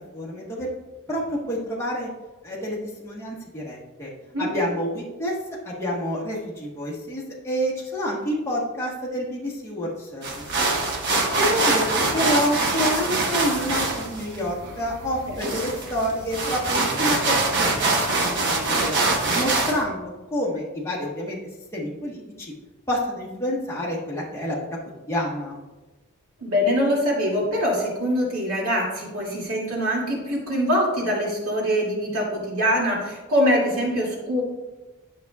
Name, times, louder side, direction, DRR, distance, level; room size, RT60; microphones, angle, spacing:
voice 1, 0.1-0.7 1.1-2.1 2.4-4.1 4.4-5.3 5.6-10.2 11.4-11.9 12.1-17.8 18.2-19.0 19.3-20.0 20.3-21.4 21.7-22.5 22.9-24.7 25.1-25.6, equal, 10° left, -5 dB, 1.2 m, -28 dB
sound 1, 10.2-19.8, right 3 dB, 55° right, 1.1 m, -24 dB
voice 2, 26.4-34.4, equal, 75° right, -4 dB, 2.4 m, -23 dB
11.0 x 5.8 x 2.3 m, 1.2 s
head